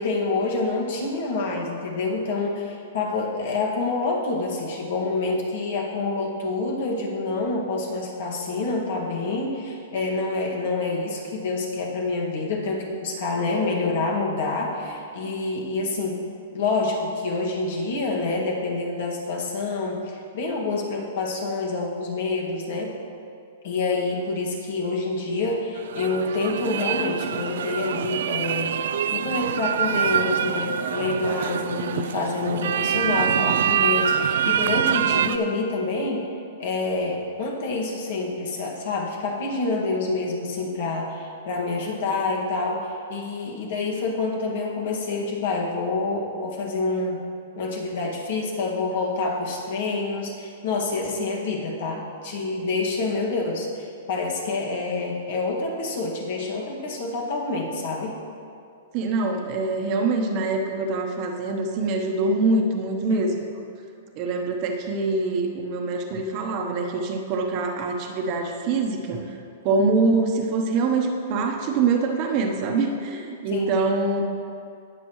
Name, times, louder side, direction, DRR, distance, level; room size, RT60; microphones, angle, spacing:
voice 1, 0.0-16.2 16.5-22.9 23.6-28.8 29.1-36.3 36.6-47.2 47.6-58.1 63.1-63.3 73.5-73.7, left 3 dB, 60° left, -1 dB, 2.0 m, -27 dB
sound 1, 25.8-35.4, right 9 dB, 70° right, 0.3 m, -25 dB
voice 2, 58.9-63.3 64.2-69.3 69.6-74.2, right 3 dB, 35° right, 2 dB, 1.0 m, -24 dB
19.0 x 6.8 x 3.2 m, 2.4 s
hypercardioid pair, 155°, 0 cm